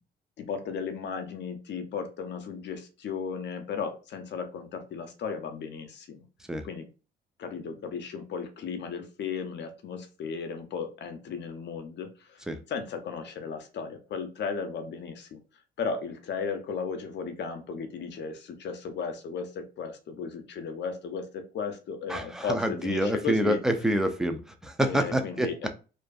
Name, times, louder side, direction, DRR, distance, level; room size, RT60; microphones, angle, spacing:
voice 1, 0.4-6.2 6.6-6.9 7.4-15.4 15.8-23.6 24.8-25.7, left 5 dB, 60° left, 7 dB, 0.6 m, -35 dB
voice 2, 22.1-25.5, right 1 dB, 5° right, 7 dB, 0.4 m, -27 dB
2.5 x 2.5 x 2.3 m, 0.33 s
cardioid pair, 90°, 20 cm